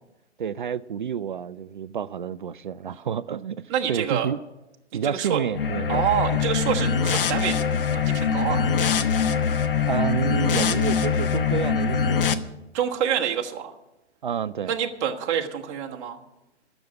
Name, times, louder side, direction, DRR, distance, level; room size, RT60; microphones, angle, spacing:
voice 1, 0.4-4.4 4.9-6.1 6.4-6.5 9.9-12.2 14.2-14.8, right 7 dB, 45° right, 0.4 m, -29 dB
voice 2, 3.7-4.3 4.9-5.4 5.9-7.6 7.9-8.9 12.7-13.7 14.6-16.2, right 9 dB, 25° right, 1.3 m, -27 dB
sound 1, 5.5-12.3, left 6 dB, 50° left, 1.0 m, -23 dB
13.5 x 7.2 x 9.5 m
figure-of-eight pair, 125°, 35 cm